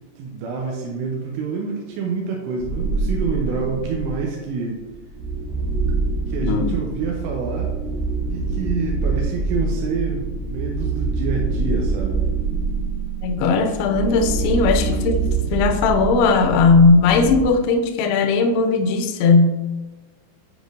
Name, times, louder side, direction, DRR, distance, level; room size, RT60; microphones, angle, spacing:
voice 1, 0.2-4.8 6.3-7.7 8.3-12.2, right 4 dB, 85° right, -1 dB, 2.8 m, -27 dB
sound 1, 2.6-4.3 4.9-17.4, right 3 dB, 65° right, 3.0 m, -25 dB
voice 2, 6.4-6.7 13.2-19.6, left 4 dB, 80° left, 5 dB, 2.4 m, -17 dB
8.2 x 5.1 x 2.6 m, 1.2 s
omnidirectional pair, 5.0 m